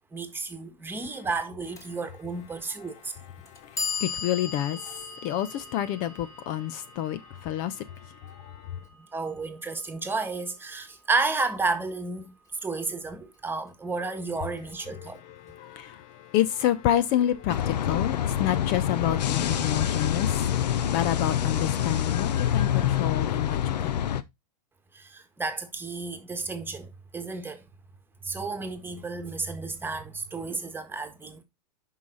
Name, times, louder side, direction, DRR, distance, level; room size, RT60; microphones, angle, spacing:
voice 1, 0.1-3.1 9.1-12.3 12.6-15.2 24.9-27.6 28.2-31.4, right 3 dB, 10° right, 1.6 m, -32 dB
Clock, 1.8-1.9 2.8-2.9 3.5-9.5, left 5 dB, 15° left, 2.5 m, -38 dB
voice 2, 2.8-8.8 14.9-24.0, left 12 dB, 45° left, 0.8 m, -29 dB
sound 1, 17.5-24.2, left 10 dB, 80° left, 0.9 m, -26 dB
8.4 x 5.8 x 3.9 m
hypercardioid pair, 125°, 21 cm